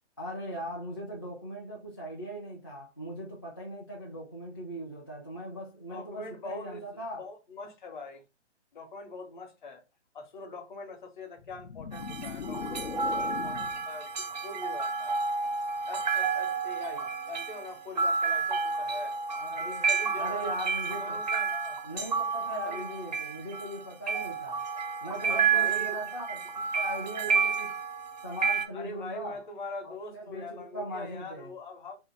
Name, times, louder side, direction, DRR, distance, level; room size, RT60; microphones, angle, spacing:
voice 1, 0.2-7.2 16.9-17.1 19.4-19.9 20.1-21.2 21.8-24.6 25.0-27.8 28.2-29.4 29.8-31.5, equal, 20° left, 0.4 m, -39 dB
voice 2, 5.9-6.8 7.2-8.2 8.7-9.8 10.1-15.2 15.9-19.2 19.6-20.5 21.0-21.8 22.6-22.9 25.2-26.0 28.7-32.0, left 2 dB, 45° left, 0.8 m, -43 dB
sound 1, 11.4-13.9, left 6 dB, 70° left, 0.6 m, -39 dB
sound 2, 11.9-28.6, right 5 dB, 40° right, 0.4 m, -30 dB
2.8 x 2.5 x 3.8 m
figure-of-eight pair, 140°, 35 cm